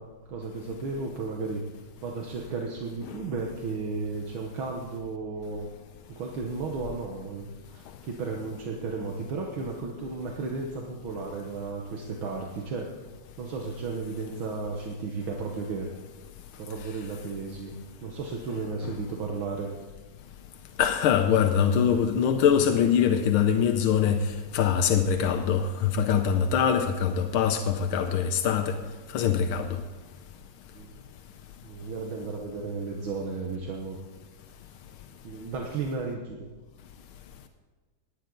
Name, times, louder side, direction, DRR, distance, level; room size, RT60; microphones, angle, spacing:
voice 1, 0.0-1.6 2.0-5.7 6.1-12.9 13.4-15.9 16.6-17.7 18.0-19.7 30.7-30.9 31.6-34.0 35.2-36.4, right 4 dB, 75° right, 2.0 m, -34 dB
voice 2, 20.8-24.2 24.5-28.8 29.1-29.8, left 8 dB, 90° left, 1.6 m, -23 dB
18.5 x 10.0 x 3.9 m
omnidirectional pair, 2.2 m